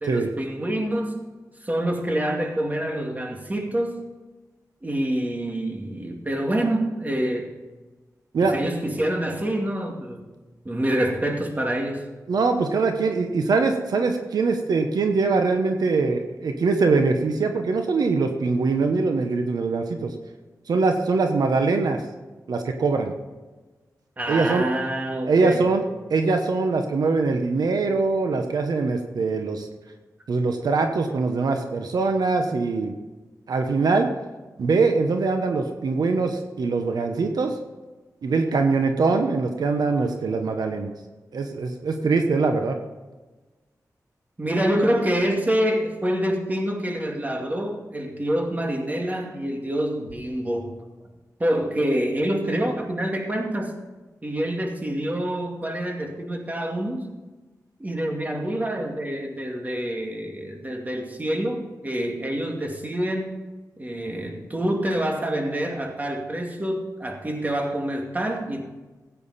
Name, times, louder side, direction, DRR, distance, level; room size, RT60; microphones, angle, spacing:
voice 1, 0.0-1.2 1.6-4.0 4.8-7.5 8.5-10.3 10.6-12.0 24.2-25.6 44.4-50.7 51.4-53.7 54.2-57.1 57.8-63.4 63.8-68.7, right 1 dB, 25° right, 1 dB, 2.3 m, -26 dB
voice 2, 12.3-20.1 20.7-22.0 22.5-23.1 24.3-24.7 25.2-25.8 26.1-29.7 30.3-32.9 33.5-34.1 34.6-37.5 38.2-40.9 41.3-42.8, right 4 dB, 85° right, 5 dB, 1.0 m, -22 dB
15.5 x 9.2 x 4.2 m, 1.2 s
cardioid pair, 70°, 7 cm